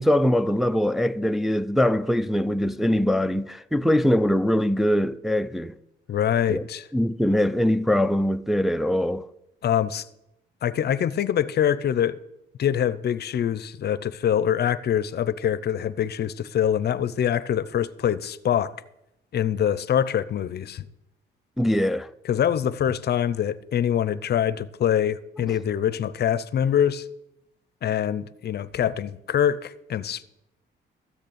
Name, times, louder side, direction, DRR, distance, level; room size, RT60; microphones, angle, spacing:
voice 1, 0.0-5.7 6.5-6.7 6.9-9.3 21.6-22.1 25.4-25.5, left 1 dB, ahead, 0.4 m, -22 dB
voice 2, 6.1-6.8 9.6-10.1 10.6-12.2 12.6-18.7 19.3-20.8 22.3-27.1 27.8-30.2, left 9 dB, 55° left, 0.7 m, -24 dB
14.0 x 6.6 x 8.6 m
cardioid pair, 90°, 20 cm